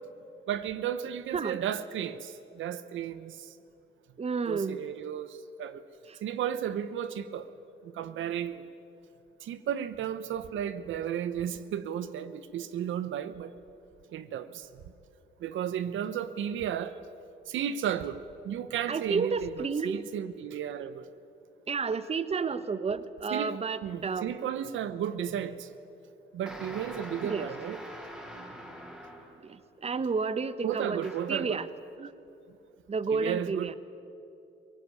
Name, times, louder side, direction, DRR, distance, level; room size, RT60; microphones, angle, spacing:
voice 1, 0.5-3.5 4.5-5.8 6.2-7.5 7.8-8.6 9.4-13.5 14.1-14.7 15.4-17.0 17.5-21.1 23.3-25.7 26.3-27.8 30.0-30.1 30.6-31.6 33.1-33.7, right 9 dB, 75° right, 13 dB, 1.0 m, -34 dB
voice 2, 4.2-4.8 18.9-20.0 21.7-24.3 27.2-27.5 29.4-31.7 32.0-32.1 32.9-33.7, right 5 dB, 30° right, 14 dB, 1.1 m, -31 dB
sound 1, 26.5-29.5 30.7-31.5, equal, 5° right, 4.2 m, -44 dB
23.0 x 18.0 x 9.8 m, 2.7 s
cardioid pair, 90°, 20 cm